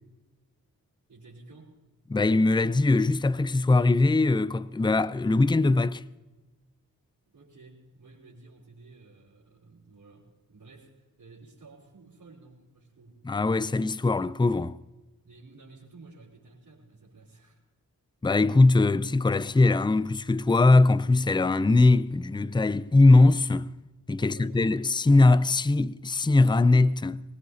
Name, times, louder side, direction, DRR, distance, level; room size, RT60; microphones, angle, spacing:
voice 1, 1.1-1.8 7.3-13.1 15.2-17.6 24.1-25.1, right 3 dB, 75° right, 4.6 m, -53 dB
voice 2, 2.1-6.0 13.2-14.8 18.2-23.7 24.1-27.2, left 2 dB, 15° left, 0.5 m, -21 dB
22.5 x 19.5 x 2.8 m
cardioid pair, 40°, 36 cm